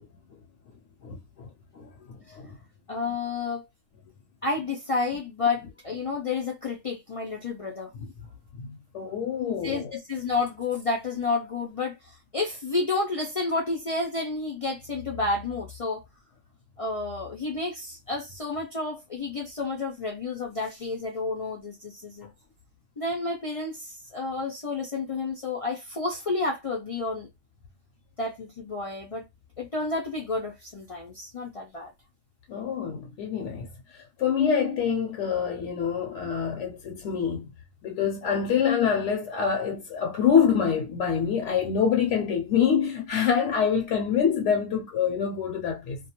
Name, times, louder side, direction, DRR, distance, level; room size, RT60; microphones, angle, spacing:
voice 1, 1.0-1.5 1.7-2.6 8.0-8.1 8.6-9.8 32.5-33.7 33.9-37.5 37.8-46.0, left 7 dB, 80° left, 0.9 m, -26 dB
voice 2, 2.9-3.6 4.4-7.9 9.6-16.0 16.8-22.3 23.0-27.3 28.2-29.2 29.6-31.9, left 3 dB, 60° left, 0.3 m, -30 dB
2.3 x 2.2 x 2.8 m
omnidirectional pair, 1.2 m